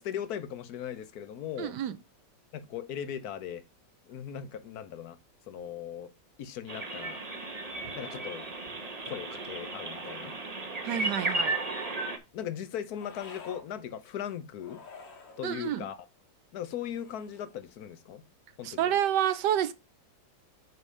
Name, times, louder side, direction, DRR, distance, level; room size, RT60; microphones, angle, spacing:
voice 1, 0.0-1.8 2.5-3.6 4.1-5.2 5.5-6.1 6.4-7.2 7.9-8.5 9.1-10.3 12.3-14.8 15.4-16.0 16.5-18.2 18.6-18.9, left 9 dB, 60° left, 1.2 m, -38 dB
voice 2, 1.6-2.0 10.8-11.6 15.4-15.8 18.6-19.7, right 10 dB, 70° right, 1.2 m, -28 dB
sound 1, 6.7-12.2, right 2 dB, 30° right, 0.9 m, -34 dB
sound 2, 11.2-12.0 12.9-13.7 14.6-15.4 16.8-17.6, left 4 dB, 80° left, 2.3 m, -50 dB
6.3 x 5.0 x 5.4 m
omnidirectional pair, 2.0 m